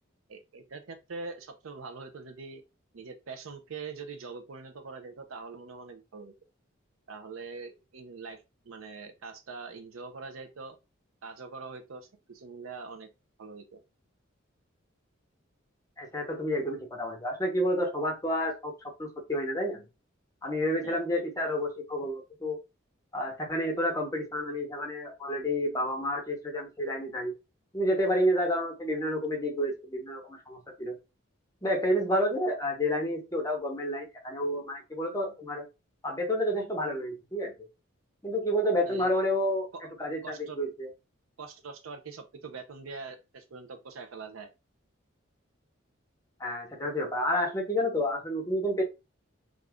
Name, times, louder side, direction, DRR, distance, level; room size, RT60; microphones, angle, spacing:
voice 1, 0.3-2.6 2.9-6.3 7.1-10.8 11.2-13.1 13.4-13.8 20.8-20.9 38.9-39.1 40.2-40.6 41.4-44.5, right 4 dB, 85° right, 0.6 m, -43 dB
voice 2, 16.0-18.7 19.0-19.8 20.4-22.6 23.1-27.3 27.7-31.0 31.6-35.7 36.0-37.5 38.2-39.7 40.0-40.9 46.4-48.8, equal, 15° left, 0.7 m, -30 dB
2.5 x 2.4 x 3.4 m
head